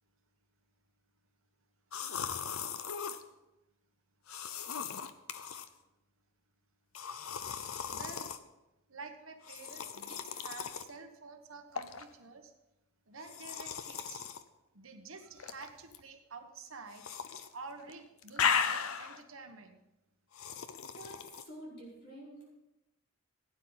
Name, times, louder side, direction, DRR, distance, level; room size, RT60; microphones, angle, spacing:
sound 1, 1.9-3.2 4.3-5.7 7.0-8.4 9.4-10.9 11.8-12.0 13.2-14.4 15.4-16.0 16.9-17.5 17.8-19.2 20.3-21.4, left 7 dB, 85° left, 0.8 m, -37 dB
voice 1, 7.9-8.3 8.9-12.5 13.1-14.3 14.7-17.1 17.5-19.8, right 4 dB, 75° right, 5 dB, 1.3 m, -49 dB
voice 2, 20.7-22.5, right 1 dB, 50° left, -5 dB, 4.9 m, -49 dB
16.0 x 9.4 x 4.1 m, 0.94 s
head